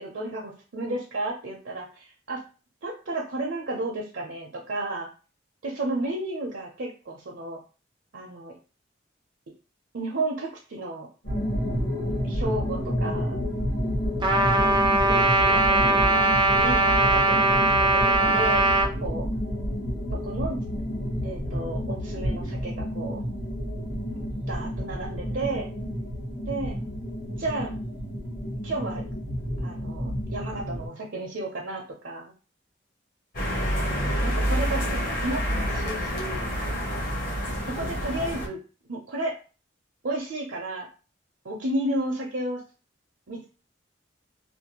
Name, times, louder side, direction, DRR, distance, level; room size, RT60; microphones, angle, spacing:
voice 1, 0.0-2.4 2.8-5.1 5.6-7.6 8.1-8.5 9.9-11.1 12.2-13.4 14.3-14.8 15.1-16.3 16.5-19.3 20.1-20.6 21.2-23.2 24.1-25.7 26.5-26.8 27.4-27.7 28.6-29.0 29.6-32.3 33.6-36.5 37.7-38.6 38.9-39.4 40.0-40.9 41.4-42.6 43.3-43.5, right 2 dB, 70° right, -1 dB, 0.6 m, -32 dB
sound 1, 11.2-30.9, equal, 70° left, 1.2 m, -30 dB
Trumpet, 14.2-18.9, right 2 dB, 25° right, 0.3 m, -21 dB
sound 2, 33.3-38.5, equal, 45° left, 0.9 m, -27 dB
2.5 x 2.2 x 2.9 m, 0.35 s
head